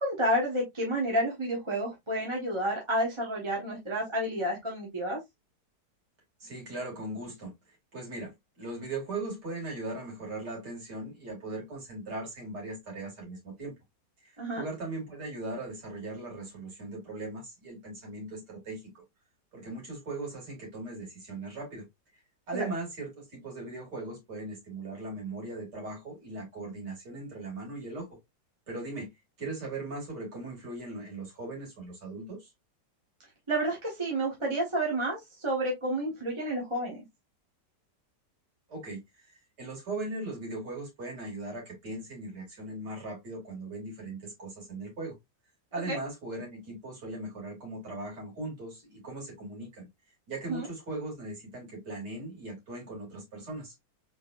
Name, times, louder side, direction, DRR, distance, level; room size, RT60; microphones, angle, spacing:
voice 1, 0.0-5.2 14.4-14.6 22.5-22.7 33.5-37.0 45.9-46.0 50.5-50.7, right 1 dB, 20° right, 1.1 m, -30 dB
voice 2, 6.4-7.5 7.9-8.3 8.6-13.7 14.2-19.0 19.5-21.9 22.5-28.1 28.7-29.1 29.4-32.5 38.7-45.1 45.7-49.9 50.3-53.7, right 2 dB, 70° right, 3.0 m, -39 dB
4.3 x 3.8 x 2.4 m
omnidirectional pair, 1.9 m